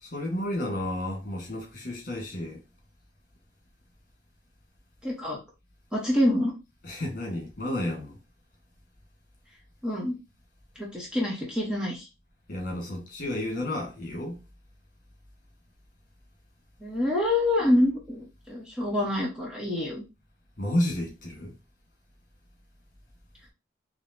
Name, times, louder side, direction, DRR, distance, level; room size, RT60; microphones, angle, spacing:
voice 1, 0.0-2.6 6.8-8.2 12.5-14.3 20.6-21.5, left 1 dB, 50° left, 1.8 m, -31 dB
voice 2, 5.0-5.4 5.9-6.5 9.8-10.1 10.8-12.1 16.8-20.0, left 1 dB, 5° right, 1.1 m, -26 dB
4.9 x 3.0 x 2.8 m
head